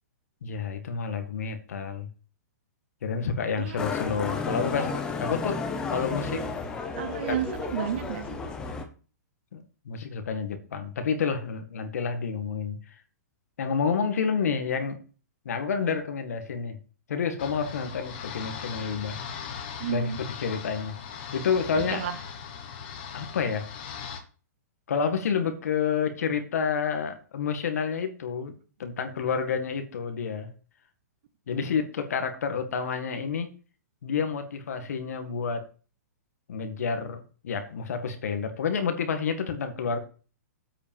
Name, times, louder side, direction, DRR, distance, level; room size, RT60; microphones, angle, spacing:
voice 1, 0.4-2.1 3.0-5.6 5.9-6.4 7.3-7.4 9.5-12.8 13.6-15.0 15.5-16.8 17.1-19.2 19.9-20.1 20.4-20.9 21.3-22.1 23.1-23.7 24.9-28.5 28.8-30.5 31.5-33.5 34.0-35.7 36.5-40.0, left 6 dB, 65° left, 1.9 m, -29 dB
voice 2, 3.6-3.9 6.9-8.4 19.8-20.2 21.7-22.2, right 10 dB, 40° right, 1.0 m, -32 dB
Motorcycle, 3.8-8.8, left 4 dB, 10° left, 0.8 m, -32 dB
sound 1, 17.4-24.2, left 7 dB, 35° left, 1.3 m, -39 dB
8.2 x 5.6 x 7.1 m
hypercardioid pair, 175°, 9 cm